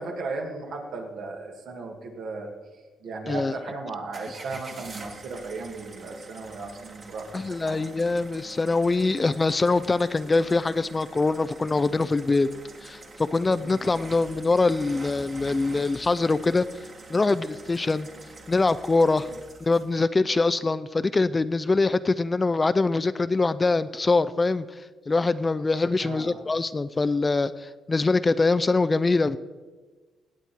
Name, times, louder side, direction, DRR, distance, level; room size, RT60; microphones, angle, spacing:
voice 1, 0.0-2.5 3.0-7.9 13.6-13.8 19.3-19.4 26.0-26.5, right 3 dB, 70° right, 1 dB, 2.3 m, -36 dB
sound 1, 4.1-20.1, right 3 dB, 40° right, 1.8 m, -45 dB
voice 2, 7.3-12.5 12.8-16.7 17.1-18.1 18.5-19.3 19.7-24.7 25.1-29.4, left 3 dB, 25° left, 15 dB, 0.4 m, -23 dB
17.5 x 8.3 x 4.5 m, 1.3 s
cardioid pair, 90°, 0 cm